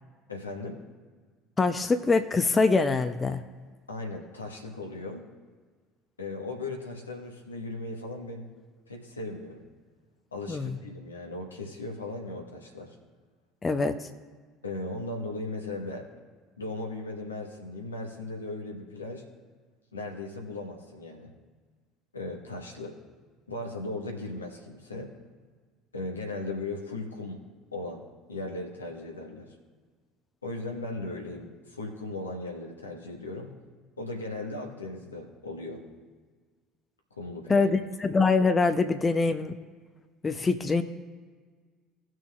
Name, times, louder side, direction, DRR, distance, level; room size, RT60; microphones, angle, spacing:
voice 1, 0.3-0.8 3.9-5.3 6.2-8.5 8.9-9.6 10.3-12.9 14.6-16.0 16.6-19.2 19.9-21.3 22.1-23.0 23.5-25.1 25.9-27.4 27.7-28.0 28.3-29.6 30.4-33.5 34.0-35.8 37.2-37.7, left 2 dB, 85° left, 1 dB, 1.3 m, -37 dB
voice 2, 1.6-3.4 10.5-10.8 13.6-14.1 37.5-39.5 40.2-40.8, left 4 dB, 25° left, 10 dB, 0.6 m, -24 dB
18.5 x 6.2 x 2.4 m, 1.5 s
figure-of-eight pair, 60°, 0 cm